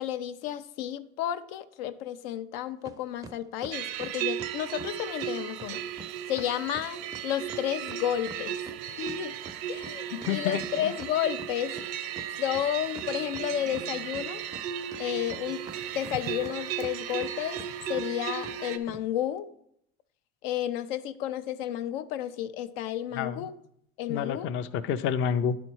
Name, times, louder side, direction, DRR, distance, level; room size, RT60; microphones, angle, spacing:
voice 1, 0.0-5.8 6.3-8.6 9.0-9.4 9.7-11.8 12.4-14.4 15.0-15.7 15.9-17.6 17.9-19.5 20.4-23.6 24.0-24.5, left 11 dB, 90° left, 11 dB, 0.5 m, -32 dB
sound 1, 2.9-3.0 3.2-4.9 5.2-5.3 5.6-5.7 6.0-6.1 6.4-8.8 9.1-11.9 12.2-12.3 12.5-13.5 13.7-14.6 14.9-16.5 16.8-17.3 17.6-17.7 17.9-18.1 18.4-18.6 18.9-19.0, right 3 dB, 15° right, 0.4 m, -45 dB
sound 2, 3.7-18.8, right 10 dB, 85° right, 0.7 m, -36 dB
voice 2, 10.2-10.6 23.2-23.5 24.1-25.6, left 8 dB, 45° left, 12 dB, 0.5 m, -28 dB
10.5 x 4.4 x 4.5 m, 0.73 s
cardioid pair, 130°, 29 cm